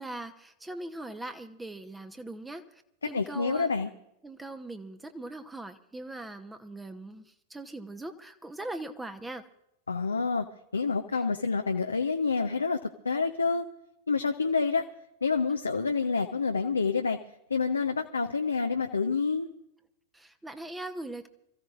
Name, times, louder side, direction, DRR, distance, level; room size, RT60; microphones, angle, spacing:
voice 1, 0.0-3.7 4.2-9.4 11.1-11.2 20.1-21.3, right 2 dB, 10° right, 8 dB, 1.1 m, -41 dB
voice 2, 3.1-3.9 9.9-10.5 10.7-13.7 14.1-14.9 15.2-17.2 17.5-19.5, left 4 dB, 75° left, 5 dB, 0.8 m, -28 dB
27.0 x 15.0 x 2.5 m, 0.80 s
figure-of-eight pair, 90°, 0 cm